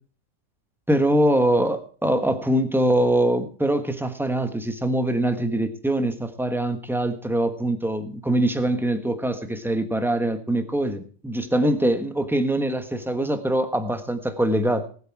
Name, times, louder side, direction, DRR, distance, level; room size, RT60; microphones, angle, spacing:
voice 1, 0.9-14.9, right 1 dB, ahead, 8 dB, 1.2 m, -23 dB
19.5 x 8.0 x 4.7 m, 0.43 s
omnidirectional pair, 1.5 m